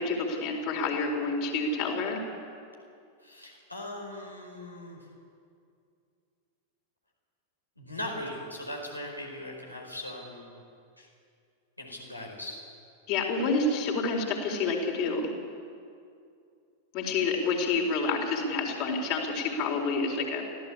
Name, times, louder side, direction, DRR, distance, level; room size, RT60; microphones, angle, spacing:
voice 1, 0.0-2.2 13.1-15.3 16.9-20.4, left 3 dB, 45° left, 2 dB, 4.4 m, -28 dB
voice 2, 3.2-5.0 7.8-10.6 11.0-11.1 11.8-12.6, left 1 dB, 85° left, 0 dB, 4.9 m, -39 dB
24.5 x 16.5 x 8.5 m, 2.4 s
figure-of-eight pair, 90°, 0 cm